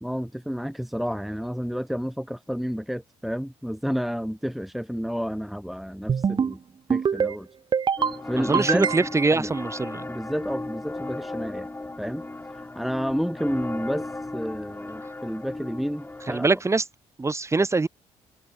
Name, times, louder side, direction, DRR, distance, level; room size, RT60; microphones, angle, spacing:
voice 1, 0.0-6.6 6.9-7.5 8.2-8.9 9.3-9.5 10.1-11.7 12.0-16.5, equal, ahead, 0.9 m, -30 dB
sound 1, 6.1-6.5 6.9-7.3 7.7-8.1 8.5-9.3, right 6 dB, 40° right, 0.7 m, -24 dB
sound 2, 8.0-16.6, left 2 dB, 15° left, 3.2 m, -35 dB
voice 2, 8.4-10.1 16.3-16.9 17.2-17.9, right 3 dB, 25° right, 1.9 m, -23 dB
open air
supercardioid pair, 70°, 12 cm